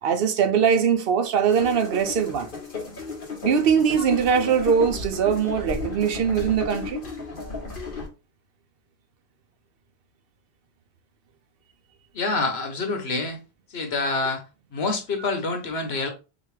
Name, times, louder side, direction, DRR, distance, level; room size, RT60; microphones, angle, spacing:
voice 1, 0.0-2.5 3.4-7.0, right 7 dB, 65° right, 0.9 m, -21 dB
sound 1, 1.5-8.1, left 4 dB, 55° left, 1.3 m, -34 dB
voice 2, 12.1-13.4 13.7-14.4 14.7-16.1, left 3 dB, 75° left, 1.3 m, -26 dB
3.9 x 3.1 x 3.2 m
omnidirectional pair, 1.1 m